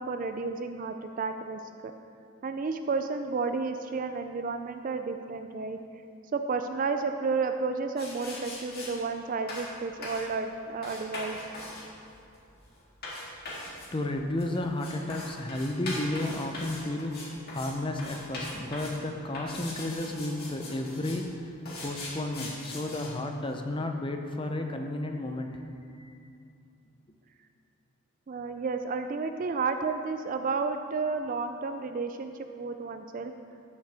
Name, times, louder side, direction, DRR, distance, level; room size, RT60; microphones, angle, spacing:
voice 1, 0.0-1.9 2.4-5.8 6.3-11.4 28.3-33.3, right 4 dB, 35° right, 7 dB, 0.3 m, -32 dB
sound 1, 8.0-8.9 9.5-9.7 10.0-10.3 10.8-17.7 18.0-19.0 19.3-21.2 21.7-23.1, left 2 dB, 45° left, 2.0 m, -40 dB
voice 2, 13.6-25.6 25.9-26.1, left 1 dB, 20° left, 4 dB, 0.6 m, -33 dB
13.0 x 6.5 x 3.4 m, 2.5 s
head